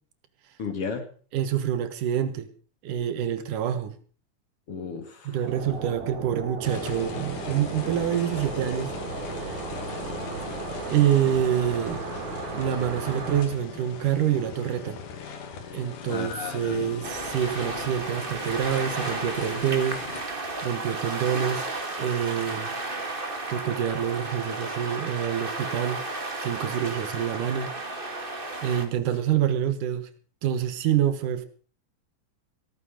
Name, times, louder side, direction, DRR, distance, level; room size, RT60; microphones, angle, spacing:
voice 1, 0.6-1.0 4.7-5.4 9.9-10.3 16.1-16.8, left 5 dB, 50° left, 2.8 m, -34 dB
voice 2, 1.3-2.5 2.8-3.9 5.2-9.0 9.3-9.5 10.8-12.0 12.5-15.0 15.7-21.7 22.0-22.7 23.5-26.0 26.4-27.7 28.3-30.1 30.4-31.5, right 10 dB, 85° right, 3.0 m, -27 dB
sound 1, 5.4-13.4, right 5 dB, 65° right, 3.9 m, -35 dB
sound 2, 6.6-20.2, left 6 dB, 80° left, 3.6 m, -39 dB
sound 3, 17.0-28.9, right 2 dB, 20° right, 1.7 m, -33 dB
15.5 x 14.0 x 5.0 m
omnidirectional pair, 3.6 m